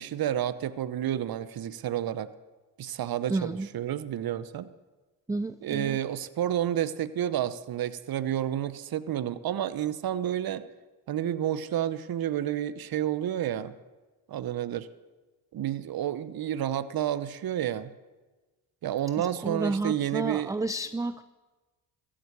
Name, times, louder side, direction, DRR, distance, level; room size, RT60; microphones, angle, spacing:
voice 1, 0.0-2.3 2.8-4.7 5.6-10.6 11.1-13.7 14.3-14.9 15.5-17.9 18.8-20.5, right 11 dB, 50° right, 15 dB, 0.9 m, -30 dB
voice 2, 3.3-3.7 5.3-6.0 19.2-21.2, right 2 dB, 10° right, 13 dB, 0.4 m, -31 dB
14.5 x 7.7 x 8.4 m, 1.2 s
supercardioid pair, 60°, 48 cm